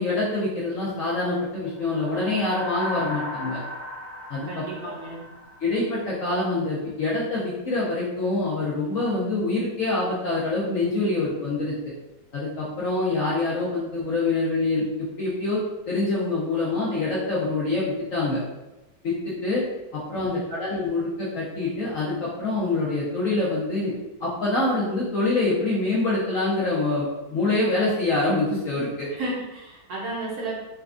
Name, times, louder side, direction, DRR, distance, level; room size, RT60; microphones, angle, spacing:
voice 1, 0.0-3.6 4.3-4.9 5.6-11.7 12.3-14.8 15.2-15.6 15.9-18.4 19.0-19.6 19.9-23.9 24.2-29.1, left 2 dB, 65° left, -7 dB, 0.8 m, -25 dB
sound 1, 1.7-6.3, left 1 dB, 90° left, 1.4 m, -36 dB
voice 2, 4.4-5.2 20.2-20.6 29.1-30.6, right 2 dB, 65° right, -4 dB, 1.1 m, -33 dB
4.1 x 2.2 x 2.4 m, 1.0 s
omnidirectional pair, 2.0 m